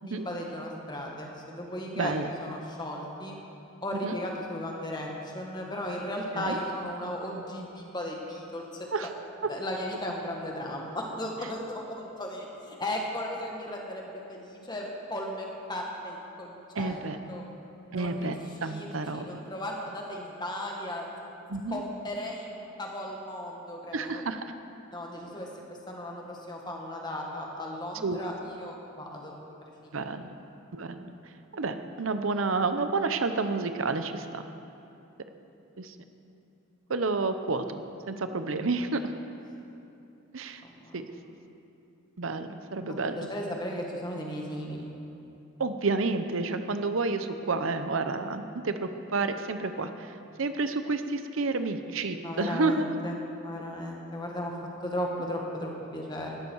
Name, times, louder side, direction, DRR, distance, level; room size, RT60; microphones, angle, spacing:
voice 1, 0.0-2.1 2.4-3.4 3.8-8.6 9.5-17.0 17.3-17.5 17.9-18.3 18.6-21.1 21.7-24.2 24.9-25.5 25.9-28.3 28.6-29.3 40.8-41.1 43.2-44.9 52.1-53.1 53.4-54.5 54.8-56.4, left 1 dB, 20° left, -1 dB, 1.8 m, -36 dB
voice 2, 1.9-2.3 3.9-4.2 6.3-6.6 8.9-9.1 16.7-17.2 17.9-18.4 18.6-19.4 21.5-21.8 23.9-24.4 28.0-28.2 29.9-30.4 30.7-31.2 31.5-34.5 35.8-36.0 36.9-39.1 40.3-40.6 40.9-41.0 42.2-43.3 45.6-52.9, right 3 dB, 70° right, 9 dB, 0.7 m, -30 dB
17.0 x 12.5 x 4.7 m, 2.8 s
head